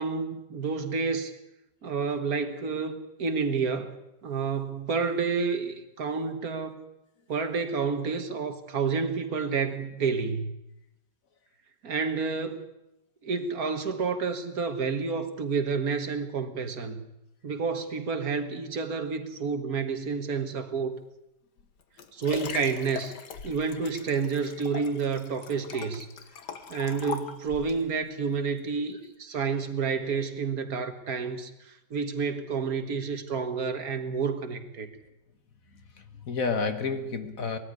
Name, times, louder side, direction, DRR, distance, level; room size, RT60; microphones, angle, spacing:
voice 1, 0.0-1.3 1.8-4.0 4.2-6.8 7.3-10.5 11.8-12.7 13.2-17.0 17.4-21.0 22.1-23.1 23.4-26.1 26.7-34.9, right 5 dB, 60° right, 9 dB, 1.9 m, -29 dB
Liquid, 21.6-27.8 28.5-28.6, left 6 dB, 80° left, 1.9 m, -40 dB
voice 2, 35.7-37.6, left 4 dB, 55° left, 9 dB, 1.7 m, -31 dB
20.0 x 13.5 x 9.7 m, 0.89 s
omnidirectional pair, 1.8 m